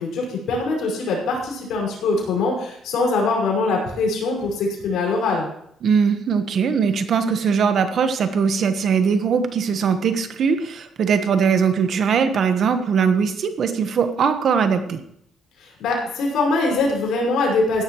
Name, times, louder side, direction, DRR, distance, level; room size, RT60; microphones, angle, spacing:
voice 1, 0.0-5.5 15.6-17.8, left 3 dB, 80° left, -1 dB, 5.7 m, -22 dB
voice 2, 5.8-15.0, right 6 dB, 60° right, 8 dB, 1.3 m, -20 dB
16.0 x 12.0 x 3.2 m, 0.70 s
cardioid pair, 90°, 0 cm